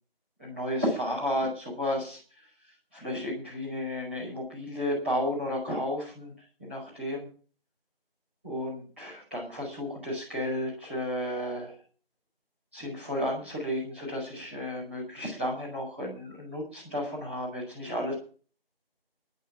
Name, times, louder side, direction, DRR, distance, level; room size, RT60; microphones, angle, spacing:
voice 1, 0.4-2.2 2.9-6.3 6.6-7.3 8.4-11.8 12.7-18.1, equal, 15° right, -9 dB, 5.2 m, -32 dB
10.5 x 9.0 x 9.7 m, 0.39 s
figure-of-eight pair, 175°, 30 cm